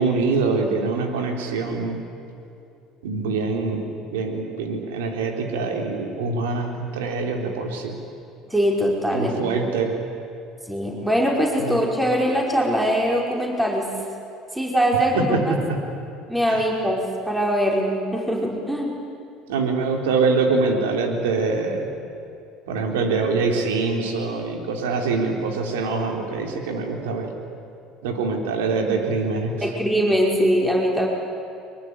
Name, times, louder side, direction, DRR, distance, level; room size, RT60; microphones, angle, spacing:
voice 1, 0.0-2.0 3.0-7.9 9.1-9.9 11.6-11.8 15.1-15.4 16.5-16.6 19.5-21.9 22.7-27.3 28.0-29.5, right 4 dB, 90° right, 3 dB, 3.5 m, -24 dB
voice 2, 8.5-9.4 10.7-13.9 14.5-15.6 16.3-18.9 29.6-31.1, equal, 5° right, -1 dB, 5.2 m, -22 dB
24.0 x 22.5 x 9.8 m, 2.6 s
supercardioid pair, 85°, 0 cm